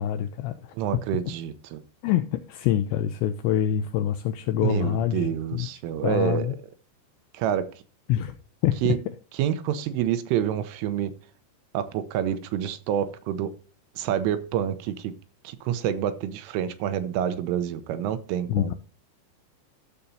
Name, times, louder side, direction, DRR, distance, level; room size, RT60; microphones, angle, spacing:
voice 1, 0.0-1.0 2.0-5.7 6.0-6.5 8.1-8.3 8.6-9.0 18.5-18.7, left 11 dB, 85° left, 2.5 m, -26 dB
voice 2, 0.8-1.8 4.6-6.6 7.3-7.7 8.8-9.0 9.4-11.1 11.7-13.5 14.0-15.1 15.4-18.7, right 10 dB, 85° right, 3.3 m, -27 dB
14.5 x 6.9 x 2.7 m
omnidirectional pair, 5.7 m